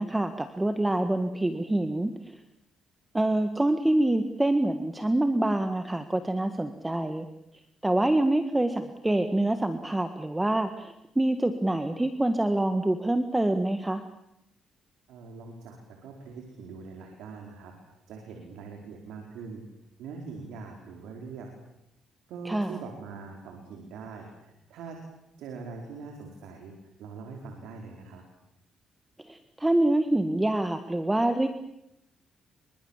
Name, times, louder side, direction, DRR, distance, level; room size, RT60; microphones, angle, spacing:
voice 1, 0.0-2.1 3.1-7.3 7.8-14.0 22.5-22.8 29.2-31.5, right 1 dB, 10° right, 8 dB, 1.8 m, -26 dB
voice 2, 15.1-17.7 18.1-19.6 20.0-21.5 22.3-25.0 25.4-28.2, right 4 dB, 85° right, 2 dB, 4.8 m, -42 dB
27.5 x 24.5 x 7.5 m, 0.84 s
cardioid pair, 90°, 0 cm